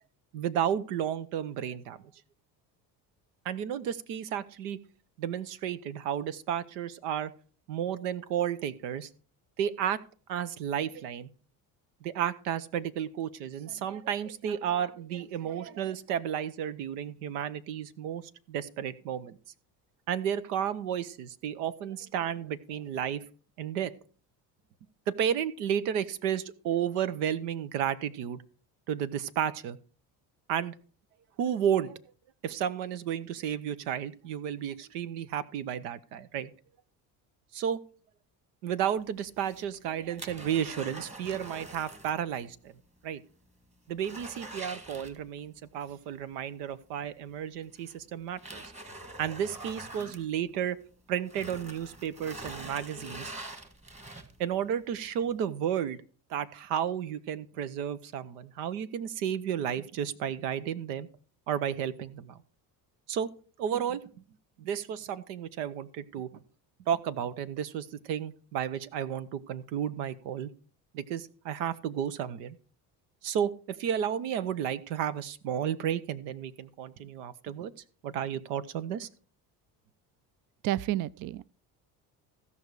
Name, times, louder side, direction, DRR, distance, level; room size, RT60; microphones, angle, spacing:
voice 1, 0.3-2.0 3.4-4.8 5.2-7.3 7.7-9.1 9.6-10.0 10.3-11.3 12.0-18.2 18.5-19.4 20.1-23.3 23.6-23.9 25.1-28.4 28.9-29.8 30.5-30.7 31.4-32.0 32.4-36.5 37.5-37.8 38.6-42.7 43.0-43.2 43.9-48.6 49.2-50.8 51.1-53.3 54.4-56.0 56.3-61.1 61.5-62.4 63.1-63.3 63.6-64.0 64.6-66.3 66.9-70.5 70.9-72.6 73.2-77.7 78.0-79.1, right 9 dB, 85° right, 0.9 m, -32 dB
sound 1, 39.3-42.2 42.5-42.6 43.1-43.2 43.5-45.6 47.0-47.1 47.7-50.9 51.2-54.5 55.1-55.2, right 1 dB, 15° right, 1.7 m, -44 dB
voice 2, 80.6-81.5, right 14 dB, 45° right, 0.4 m, -30 dB
16.0 x 5.5 x 4.8 m
supercardioid pair, 75°, 46 cm